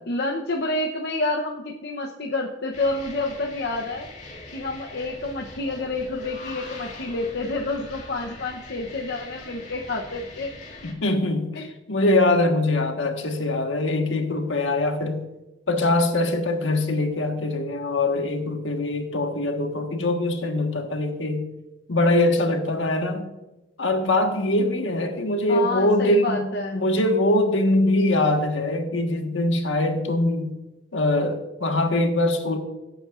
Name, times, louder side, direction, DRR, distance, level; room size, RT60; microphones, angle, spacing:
voice 1, 0.0-4.1 4.5-10.5 11.6-11.7 25.5-26.9, left 2 dB, 55° left, 0 dB, 0.8 m, -28 dB
sound 1, 2.7-10.9, left 3 dB, 35° left, 2.1 m, -42 dB
voice 2, 10.8-15.2 15.7-21.5 21.9-23.3 23.8-30.5 30.9-32.6, left 1 dB, 75° left, 4 dB, 1.5 m, -23 dB
17.0 x 8.8 x 2.5 m, 1.0 s
head